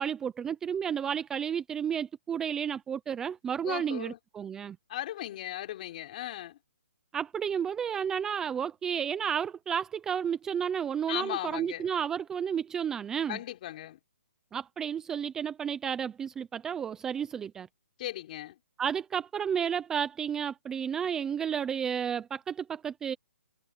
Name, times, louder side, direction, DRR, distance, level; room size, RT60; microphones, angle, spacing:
voice 1, 0.0-4.8 7.1-13.4 14.5-17.7 18.8-23.1, right 8 dB, 5° right, 0.5 m, -32 dB
voice 2, 3.6-4.2 4.9-6.6 11.1-11.9 13.3-14.0 18.0-18.6, left 13 dB, 35° left, 4.0 m, -37 dB
hypercardioid pair, 165°, 8 cm